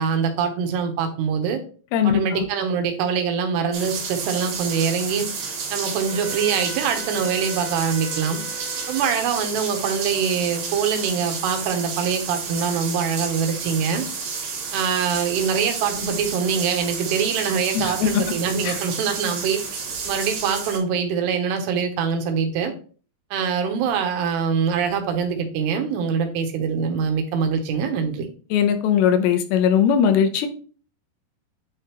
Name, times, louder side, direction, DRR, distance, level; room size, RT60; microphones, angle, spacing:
voice 1, 0.0-1.6 2.0-5.3 5.7-8.4 8.9-14.0 14.7-19.6 20.0-22.7 23.3-28.3, right 6 dB, 80° right, 5 dB, 2.9 m, -24 dB
voice 2, 1.9-2.4 17.7-18.2 18.6-18.8 28.5-30.5, left 8 dB, 85° left, 7 dB, 2.9 m, -19 dB
sound 1, 3.7-20.8, right 5 dB, 60° right, 3.3 m, -31 dB
Wind instrument woodwind instrument, 6.1-9.5, right 1 dB, 65° left, 1.7 m, -39 dB
9.4 x 3.4 x 2.9 m, 0.39 s
omnidirectional pair, 5.0 m